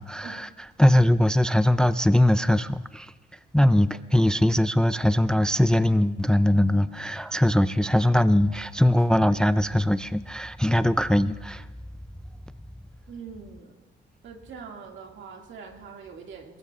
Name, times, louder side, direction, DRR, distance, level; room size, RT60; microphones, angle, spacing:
voice 1, 0.0-3.1 3.5-11.7, left 1 dB, 5° left, 0.4 m, -21 dB
voice 2, 13.1-13.7 14.2-16.6, right 5 dB, 75° right, 2.1 m, -43 dB
23.0 x 19.0 x 2.4 m
cardioid pair, 90°, 20 cm